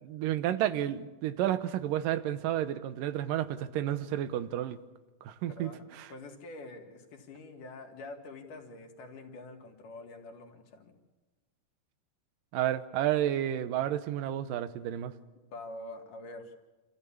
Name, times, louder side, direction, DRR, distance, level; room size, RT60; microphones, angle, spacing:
voice 1, 0.0-4.8 5.2-6.1 12.5-15.1, right 12 dB, 90° right, 13 dB, 2.6 m, -31 dB
voice 2, 5.4-10.9 15.5-16.5, left 2 dB, 75° left, 3 dB, 3.5 m, -46 dB
27.0 x 14.5 x 8.6 m, 1.2 s
omnidirectional pair, 3.8 m